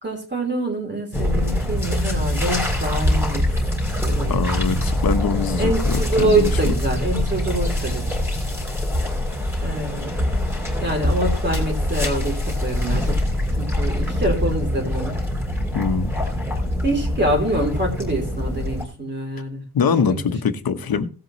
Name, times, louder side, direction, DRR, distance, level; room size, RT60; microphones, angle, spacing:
voice 1, 0.0-3.4 4.0-4.3 5.6-8.1 9.6-10.3 10.8-13.2 13.5-15.2 16.8-19.6 20.1-20.2, right 1 dB, 25° right, 3.4 m, -25 dB
sound 1, 1.1-18.8, left 1 dB, 5° right, 3.0 m, -24 dB
voice 2, 4.3-6.7 15.7-16.1 19.7-21.1, left 5 dB, 65° left, 1.1 m, -23 dB
17.0 x 7.7 x 3.1 m
wide cardioid pair, 175°, 39 cm